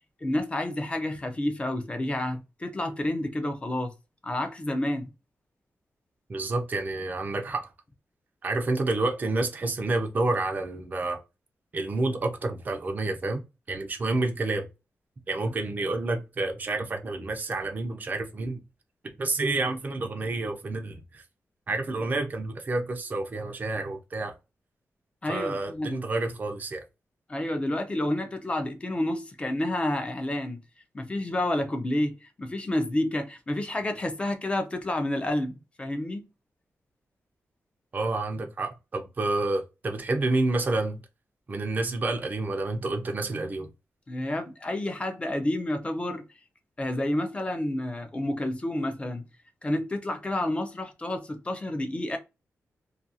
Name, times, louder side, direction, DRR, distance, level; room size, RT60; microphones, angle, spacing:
voice 1, 0.2-3.9 4.2-5.1 25.2-26.1 27.3-30.6 30.9-36.2 44.1-46.3 46.8-49.2 49.6-52.2, left 1 dB, 20° left, 0.5 m, -29 dB
voice 2, 6.3-7.7 8.4-11.2 11.7-13.4 13.7-14.6 15.3-18.6 19.2-21.2 21.7-24.3 25.3-26.8 37.9-41.0 41.5-43.7, right 2 dB, 35° right, 0.5 m, -29 dB
2.4 x 2.3 x 2.6 m
wide cardioid pair, 160°, 5 cm